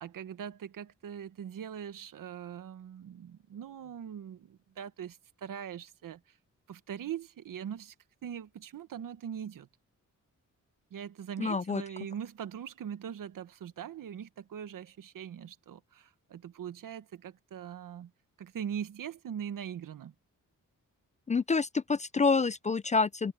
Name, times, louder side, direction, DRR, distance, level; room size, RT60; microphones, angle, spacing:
voice 1, 0.0-6.4 6.7-7.9 8.2-9.7 10.9-18.1 18.4-20.1, right 9 dB, 85° right, 1.3 m, -41 dB
voice 2, 11.4-11.8 21.3-23.3, left 4 dB, 25° left, 0.3 m, -27 dB
cardioid pair, 105°, 32 cm